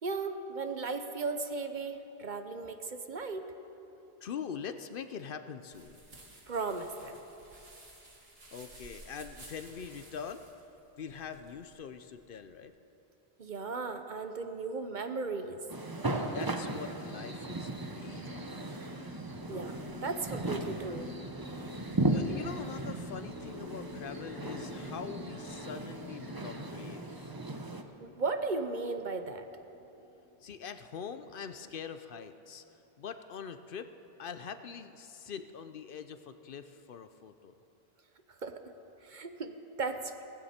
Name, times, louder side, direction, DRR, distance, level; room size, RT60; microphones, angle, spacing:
voice 1, 0.0-3.5 6.5-7.2 13.4-15.6 19.5-21.2 28.0-29.4 38.4-38.6 39.0-40.2, right 4 dB, 50° right, 7 dB, 0.9 m, -36 dB
voice 2, 4.2-6.0 8.5-10.4 11.0-12.7 16.1-18.8 22.1-27.4 30.4-33.9 34.2-37.5, left 7 dB, 65° left, 10 dB, 0.8 m, -43 dB
sound 1, 5.7-12.6, right 2 dB, 75° right, 2.2 m, -54 dB
sound 2, 15.7-27.8, right 2 dB, 25° right, 0.8 m, -37 dB
sound 3, 16.3-30.8, left 3 dB, 5° left, 3.1 m, -49 dB
18.0 x 15.5 x 4.3 m, 2.9 s
omnidirectional pair, 1.0 m